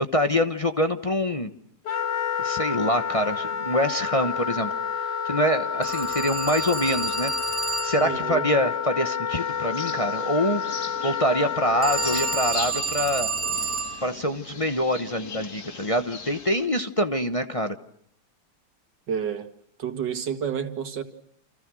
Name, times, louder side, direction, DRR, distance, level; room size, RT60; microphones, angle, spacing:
voice 1, 0.0-1.5 2.4-4.7 5.0-10.6 11.0-13.3 14.0-17.8, equal, 25° left, 1.0 m, -25 dB
Wind instrument woodwind instrument, 1.9-12.5, left 7 dB, 75° left, 2.0 m, -29 dB
Telephone, 5.8-8.1 11.8-14.0, right 4 dB, 5° right, 4.8 m, -29 dB
voice 2, 8.0-8.5 19.1-19.5 19.8-21.0, right 7 dB, 90° right, 2.5 m, -29 dB
sound 1, 9.3-16.7, left 5 dB, 60° left, 2.6 m, -40 dB
30.0 x 27.5 x 6.3 m
omnidirectional pair, 1.8 m